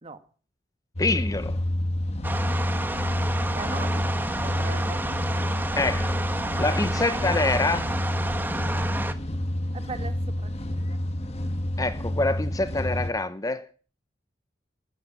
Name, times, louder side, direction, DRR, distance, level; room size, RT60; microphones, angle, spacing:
sound 1, 1.0-13.1, left 1 dB, 35° left, 1.4 m, -29 dB
voice 1, 1.0-1.6 5.8-6.1 6.6-7.9 11.8-13.7, left 2 dB, 20° left, 0.8 m, -26 dB
sound 2, 2.2-9.1, right 1 dB, 10° right, 1.2 m, -30 dB
voice 2, 3.5-4.1 4.4-5.1 9.7-11.3, right 3 dB, 35° right, 1.8 m, -40 dB
13.5 x 13.0 x 7.1 m
head